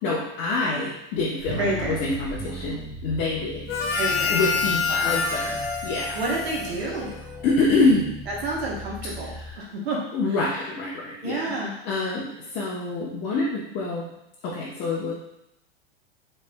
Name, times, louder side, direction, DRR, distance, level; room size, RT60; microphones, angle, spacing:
voice 1, 0.0-3.6 4.3-6.2 7.4-8.1 10.1-11.5 11.9-14.1 14.4-15.1, left 3 dB, 40° left, -7 dB, 0.9 m, -26 dB
sound 1, 1.4-9.6, right 1 dB, 10° right, 0.4 m, -39 dB
voice 2, 1.5-2.0 4.0-4.3 4.9-5.2 6.1-7.1 8.3-10.0 10.4-10.6 11.2-11.7, right 2 dB, 80° right, -2 dB, 1.2 m, -29 dB
Harmonica, 3.7-7.5, left 5 dB, 75° left, 0.8 m, -27 dB
4.7 x 3.3 x 2.2 m, 0.83 s
hypercardioid pair, 125°, 31 cm